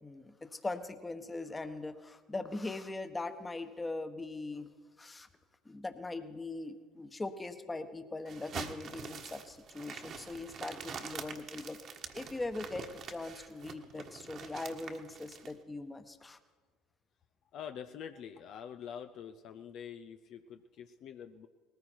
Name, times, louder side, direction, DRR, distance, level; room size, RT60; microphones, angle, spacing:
voice 1, 0.0-4.7 5.0-5.3 5.6-11.8 12.1-16.4, left 2 dB, 20° left, 9 dB, 1.3 m, -41 dB
sound 1, 8.3-15.5, right 6 dB, 50° right, 1.4 m, -45 dB
voice 2, 17.5-21.5, left 8 dB, 60° left, 8 dB, 0.6 m, -46 dB
19.0 x 14.5 x 4.6 m, 1.5 s
hypercardioid pair, 70°, 0 cm